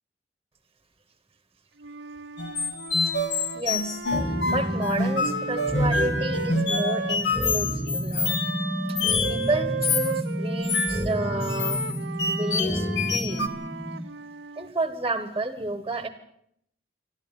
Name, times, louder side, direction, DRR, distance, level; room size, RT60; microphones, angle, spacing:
Wind instrument woodwind instrument, 1.8-7.6 8.2-14.7, right 4 dB, 70° right, 0.8 m, -36 dB
sound 1, 2.4-9.5 9.8-10.2 10.6-13.5, left 3 dB, 70° left, 2.4 m, -27 dB
voice 1, 3.5-8.4 8.9-11.8 12.3-13.5 14.5-16.1, right 2 dB, 20° right, 11 dB, 1.6 m, -31 dB
sound 2, 4.1-14.1, equal, 5° left, 2.5 m, -30 dB
27.0 x 12.5 x 9.4 m, 0.73 s
head